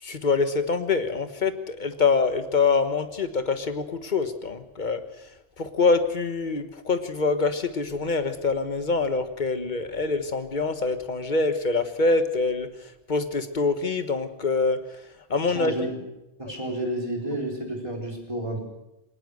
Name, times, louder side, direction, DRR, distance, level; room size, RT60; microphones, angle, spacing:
voice 1, 0.0-5.0 5.6-12.7 13.1-14.8 15.3-15.8, left 4 dB, 40° left, 9 dB, 1.5 m, -25 dB
voice 2, 15.5-16.0 16.4-18.6, right 1 dB, 25° right, 0 dB, 4.3 m, -30 dB
21.0 x 19.5 x 6.6 m, 0.91 s
omnidirectional pair, 1.2 m